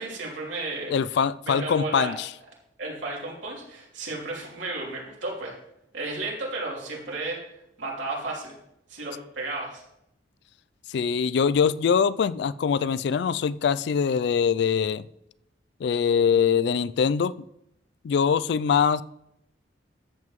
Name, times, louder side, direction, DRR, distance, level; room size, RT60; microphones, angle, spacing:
voice 1, 0.0-0.9 1.5-2.2 2.8-5.5 5.9-7.4 7.8-8.5 8.9-9.8, right 2 dB, 85° right, 3.2 m, -33 dB
voice 2, 0.9-2.3 10.9-15.1 15.8-17.3 18.0-19.0, left 6 dB, 60° left, 0.3 m, -23 dB
13.0 x 7.6 x 3.1 m
head